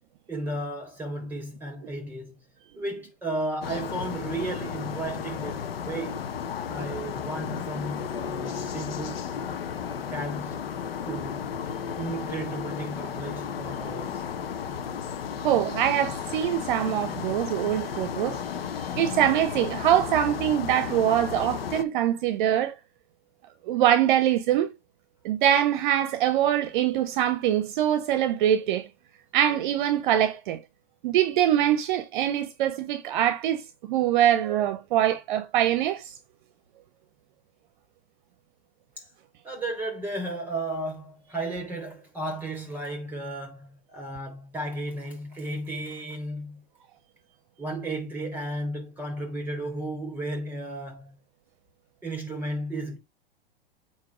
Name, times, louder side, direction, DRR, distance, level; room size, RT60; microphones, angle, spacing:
voice 1, 0.3-2.4 2.7-6.2 6.7-9.3 9.9-10.6 11.1-11.5 11.9-14.2 39.0-39.1 39.4-46.6 47.6-51.1 52.0-53.0, right 2 dB, 5° right, 4.0 m, -34 dB
sound 1, 3.6-21.8, left 7 dB, 75° left, 0.9 m, -34 dB
voice 2, 15.4-18.4 19.0-22.7 23.7-24.7 25.2-28.9 29.3-30.6 31.0-36.2, right 11 dB, 55° right, 0.7 m, -23 dB
8.3 x 2.9 x 4.8 m
hypercardioid pair, 110°, 30 cm